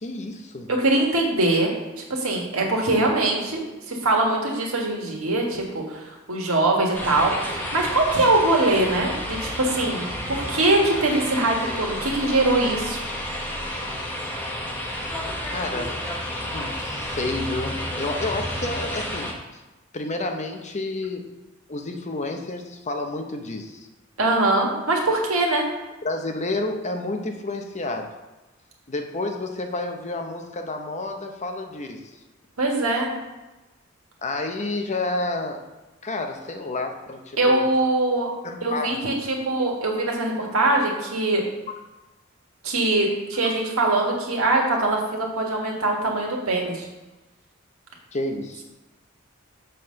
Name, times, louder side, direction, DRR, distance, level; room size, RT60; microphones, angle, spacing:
voice 1, 0.0-0.7 15.5-16.0 16.5-19.6 19.9-21.3 21.7-23.9 26.0-28.1 28.9-32.1 34.2-35.7 36.0-37.7 38.4-39.1 44.7-44.8 48.1-48.6, left 2 dB, 35° left, 4 dB, 0.7 m, -30 dB
voice 2, 0.7-1.7 2.1-3.6 3.9-13.0 24.2-25.6 32.6-33.1 37.4-38.3 38.6-41.4 42.6-46.9, right 2 dB, 90° right, 0 dB, 1.6 m, -22 dB
sound 1, 6.9-19.3, equal, 10° left, 1.1 m, -31 dB
6.6 x 4.1 x 6.3 m, 1.1 s
head